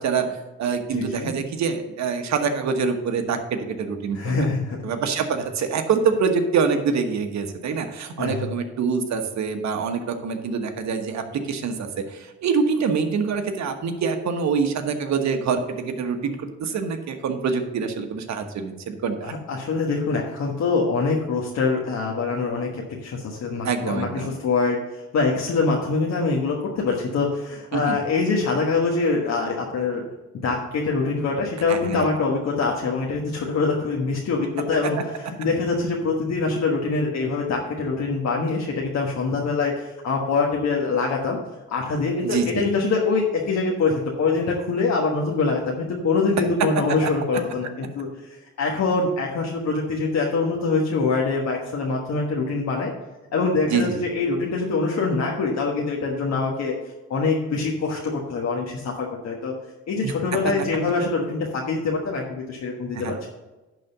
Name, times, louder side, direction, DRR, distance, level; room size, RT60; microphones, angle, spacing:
voice 1, 0.0-4.5 4.8-19.3 23.6-24.3 27.7-28.0 31.7-32.0 42.2-42.6 53.7-54.0 60.0-60.1 62.9-63.1, right 5 dB, 65° right, 6 dB, 1.3 m, -25 dB
voice 2, 0.9-1.3 4.1-4.8 8.2-8.5 19.2-30.0 30.4-41.4 41.7-52.9 53.3-56.7 57.1-59.5 59.9-63.3, left 4 dB, 60° left, -1 dB, 1.4 m, -24 dB
10.5 x 4.0 x 6.7 m, 1.1 s
cardioid pair, 90°, 30 cm